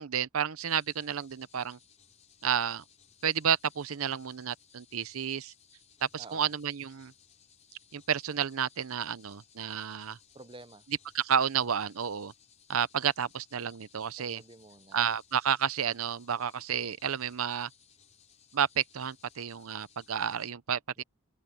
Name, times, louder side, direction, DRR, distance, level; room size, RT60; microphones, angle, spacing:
voice 1, 0.0-1.8 2.4-2.8 3.2-5.5 6.0-7.1 7.9-10.2 11.1-12.3 12.7-14.4 14.9-17.7 18.5-21.0, right 8 dB, 85° right, 0.7 m, -31 dB
sound 1, 0.6-20.5, left 7 dB, 35° left, 4.7 m, -62 dB
voice 2, 6.2-6.5 10.3-10.8 14.2-15.0 21.0-21.1, right 2 dB, 25° right, 0.8 m, -50 dB
open air
head